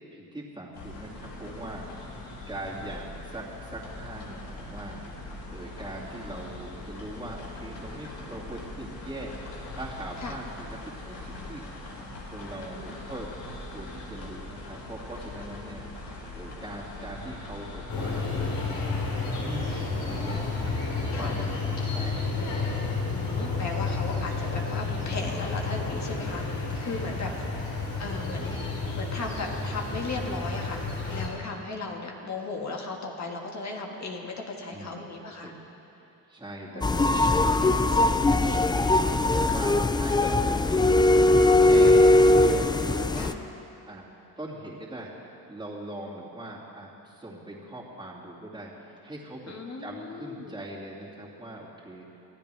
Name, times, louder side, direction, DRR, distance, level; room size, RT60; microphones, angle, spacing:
voice 1, 0.1-11.7 12.0-13.3 13.6-23.5 26.9-27.6 34.7-35.1 35.4-35.7 35.9-37.4 39.0-41.0 41.6-43.4 43.8-44.1 44.4-52.1, right 1 dB, 10° right, -7 dB, 2.5 m, -41 dB
sound 1, 0.7-20.7, left 2 dB, 85° left, 3.1 m, -41 dB
sound 2, 17.9-31.3, left 3 dB, 65° left, 4.5 m, -31 dB
voice 2, 23.1-27.3 28.0-35.5 36.7-37.3 37.6-38.6 39.5-39.9 43.2-43.3 49.5-50.5, left 3 dB, 45° left, 0 dB, 1.8 m, -36 dB
sound 3, 36.8-43.3, left 2 dB, 10° left, 0.3 m, -20 dB
24.0 x 14.5 x 3.5 m, 2.9 s
cardioid pair, 115°, 38 cm